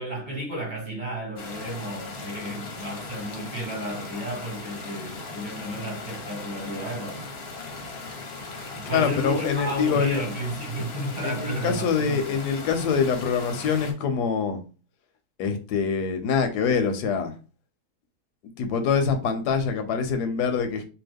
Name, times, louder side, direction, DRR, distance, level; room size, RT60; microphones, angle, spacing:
voice 1, 0.0-7.3 8.9-12.4, right 1 dB, 30° right, 1.2 m, -33 dB
Ambiance Waterfall Small Close Loop Stereo, 1.4-13.9, left 3 dB, 55° left, 0.7 m, -38 dB
voice 2, 8.9-10.2 11.2-14.6 15.4-17.3 18.6-20.8, left 6 dB, 85° left, 1.2 m, -25 dB
2.9 x 2.3 x 3.3 m
omnidirectional pair, 1.7 m